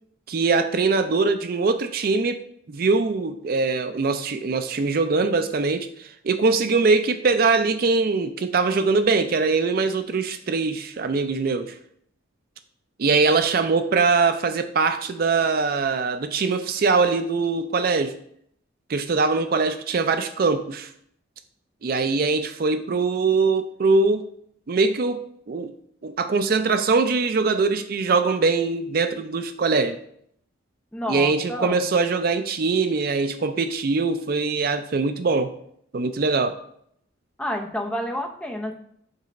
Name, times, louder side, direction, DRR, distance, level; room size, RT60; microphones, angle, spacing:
voice 1, 0.3-11.8 13.0-18.1 18.9-20.9 21.8-24.2 24.7-25.7 26.0-30.0 31.1-35.5 35.9-36.6, right 4 dB, 50° right, 9 dB, 0.4 m, -22 dB
voice 2, 30.9-31.8 37.4-38.7, equal, 5° left, 1 dB, 0.7 m, -29 dB
5.3 x 3.9 x 5.1 m, 0.68 s
head